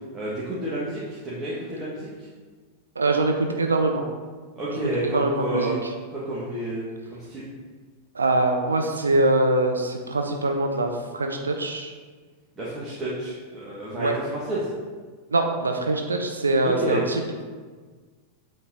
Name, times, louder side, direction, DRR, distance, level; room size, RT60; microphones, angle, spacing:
voice 1, 0.1-2.1 4.6-5.8 6.1-7.5 12.6-14.7 16.6-17.0, right 1 dB, 20° right, -9 dB, 1.6 m, -30 dB
voice 2, 3.0-4.1 5.0-5.8 8.1-11.9 14.0-14.1 15.3-17.4, right 2 dB, 75° right, 3 dB, 0.6 m, -23 dB
8.1 x 4.3 x 4.1 m, 1.5 s
figure-of-eight pair, 90°, 0 cm